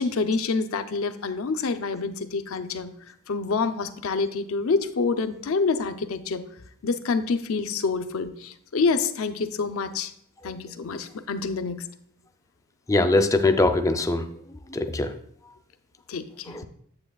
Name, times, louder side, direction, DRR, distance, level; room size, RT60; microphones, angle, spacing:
voice 1, 0.0-2.9 3.3-6.4 6.8-10.1 10.4-11.8 16.1-16.6, left 4 dB, 70° left, 10 dB, 0.6 m, -27 dB
voice 2, 12.9-14.3 14.7-15.1 16.5-16.6, left 2 dB, 15° left, 8 dB, 0.4 m, -21 dB
8.7 x 7.9 x 2.3 m, 0.68 s
head